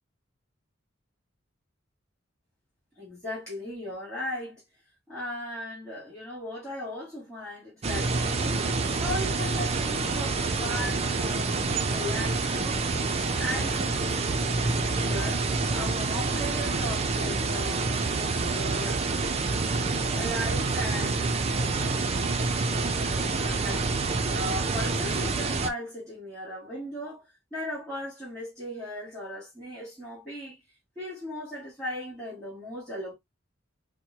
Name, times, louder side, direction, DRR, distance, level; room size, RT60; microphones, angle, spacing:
voice 1, 3.0-4.6 5.1-8.6 9.0-11.5 11.9-13.0 13.4-14.5 14.9-18.0 18.4-19.1 20.1-21.4 22.8-23.9 24.3-27.2 27.5-30.6 31.0-33.1, left 1 dB, 5° left, 1.9 m, -37 dB
sound 1, 7.8-25.7, right 3 dB, 35° right, 0.5 m, -27 dB
4.5 x 2.2 x 2.8 m
head